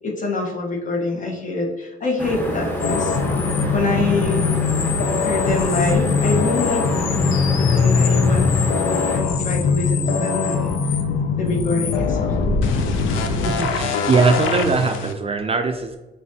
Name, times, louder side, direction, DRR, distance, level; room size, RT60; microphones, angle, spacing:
voice 1, 0.0-3.2 3.7-4.5 5.2-7.1 7.6-10.7 11.4-12.5, left 2 dB, 40° left, 0 dB, 1.2 m, -26 dB
sound 1, 2.2-9.2, equal, 10° left, 1.0 m, -27 dB
sound 2, 2.8-15.1, left 5 dB, 85° left, 0.5 m, -21 dB
voice 2, 13.1-16.0, right 4 dB, 30° right, 5 dB, 0.4 m, -21 dB
6.0 x 2.6 x 2.8 m, 1.1 s
cardioid pair, 90°, 20 cm